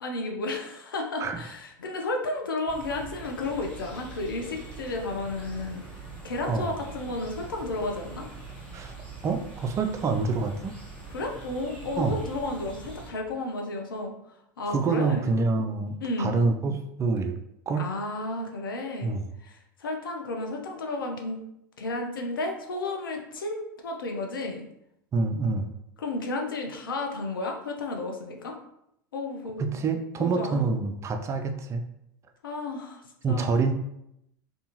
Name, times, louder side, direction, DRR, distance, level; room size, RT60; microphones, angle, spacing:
voice 1, 0.0-5.8 6.2-8.3 11.1-14.1 14.6-15.3 16.0-16.4 17.8-19.2 19.4-19.5 19.8-21.4 21.8-24.6 26.0-28.5 29.1-29.7 30.2-30.6 32.4-33.0 33.3-33.6, left 2 dB, 85° left, 2 dB, 0.5 m, -32 dB
sound 1, 2.7-13.1, right 4 dB, 10° left, 0.9 m, -43 dB
voice 2, 9.2-10.7 12.0-12.2 14.7-17.3 17.7-17.9 19.0-19.2 25.1-25.7 29.6-31.8 33.2-33.7, right 4 dB, 25° right, 5 dB, 0.3 m, -26 dB
2.6 x 2.3 x 2.8 m, 0.80 s
hypercardioid pair, 95°, 11 cm